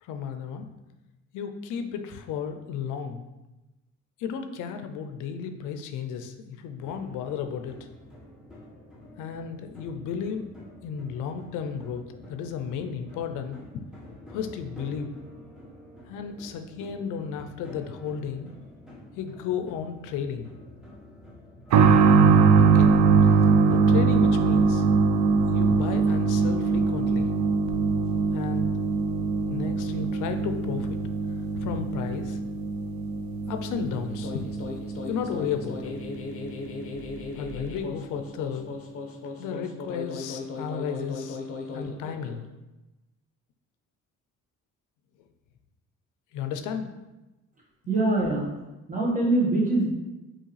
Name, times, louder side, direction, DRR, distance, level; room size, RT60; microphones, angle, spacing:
voice 1, 0.0-0.7 1.3-3.2 4.2-7.8 9.2-10.5 10.8-13.8 14.3-15.1 16.1-18.5 19.2-20.5 22.6-22.9 23.7-24.9 25.5-27.3 28.3-28.7 29.5-31.0 31.6-32.4 33.5-34.4 35.1-35.9 37.4-38.7 39.4-41.4 41.7-42.5 46.3-46.9, left 7 dB, 90° left, 7 dB, 0.5 m, -33 dB
sound 1, 6.8-24.8, left 1 dB, ahead, 1.2 m, -48 dB
sound 2, 21.7-36.1 36.4-36.5 37.5-37.6, right 5 dB, 70° right, 0.5 m, -22 dB
sound 3, 34.0-42.5, left 3 dB, 50° left, 0.7 m, -37 dB
voice 2, 47.9-48.5 48.9-49.9, right 2 dB, 25° right, -3 dB, 1.4 m, -23 dB
4.6 x 3.0 x 3.2 m, 1.0 s
cardioid pair, 90°, 30 cm